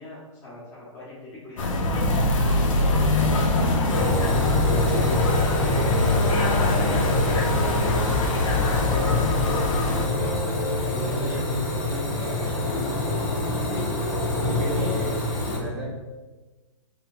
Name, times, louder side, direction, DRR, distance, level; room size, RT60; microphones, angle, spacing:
voice 1, 0.0-2.8 3.5-5.3 7.9-9.4, left 2 dB, 15° left, -7 dB, 1.2 m, -42 dB
sound 1, 1.6-10.1, left 2 dB, 70° left, 0.8 m, -23 dB
sound 2, 3.9-15.6, left 2 dB, 35° left, 0.8 m, -26 dB
voice 2, 10.9-13.2 13.5-15.1 15.4-15.9, right 1 dB, 20° right, -5 dB, 0.5 m, -33 dB
5.1 x 3.2 x 2.4 m, 1.3 s
hypercardioid pair, 170°, 17 cm